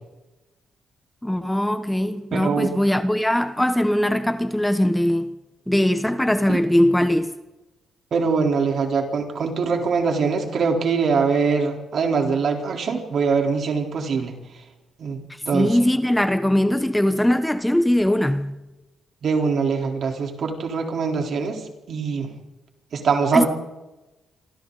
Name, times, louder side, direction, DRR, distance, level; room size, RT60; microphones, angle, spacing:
voice 1, 1.2-5.3 5.7-7.3 15.5-18.6 23.3-23.5, left 1 dB, 5° left, 1.0 m, -20 dB
voice 2, 2.3-2.7 6.5-6.6 8.1-14.4 15.0-15.2 15.5-15.8 19.2-21.6 21.9-22.3 22.9-23.5, right 5 dB, 60° right, 3.9 m, -23 dB
27.0 x 24.0 x 4.1 m
cardioid pair, 105°, 0 cm